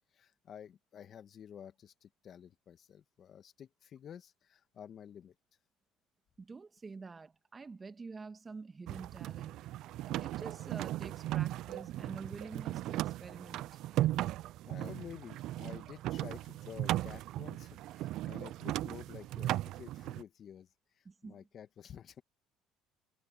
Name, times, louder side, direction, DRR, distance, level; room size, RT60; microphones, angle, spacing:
voice 1, 0.1-5.3 14.7-20.7 21.0-22.2, left 9 dB, 45° left, 1.8 m, -51 dB
voice 2, 6.4-9.7 10.2-13.8 21.0-21.4, right 4 dB, 25° right, 1.7 m, -48 dB
sound 1, 8.9-20.2, right 15 dB, 65° right, 0.4 m, -37 dB
supercardioid pair, 90°, 0 cm